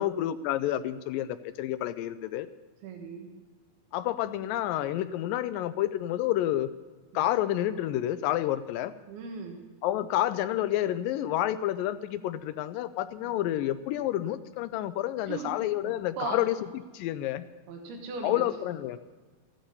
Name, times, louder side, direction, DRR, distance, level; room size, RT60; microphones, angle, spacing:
voice 1, 0.0-2.5 3.9-6.7 7.1-8.9 9.8-16.6 16.9-17.4 18.2-19.0, left 13 dB, 80° left, 12 dB, 2.1 m, -29 dB
voice 2, 2.8-3.3 7.1-7.2 9.1-9.6 13.3-13.4 15.3-15.5 15.9-16.4 17.7-18.4, right 5 dB, 90° right, 2 dB, 3.4 m, -38 dB
14.5 x 12.0 x 5.5 m, 1.4 s
omnidirectional pair, 4.3 m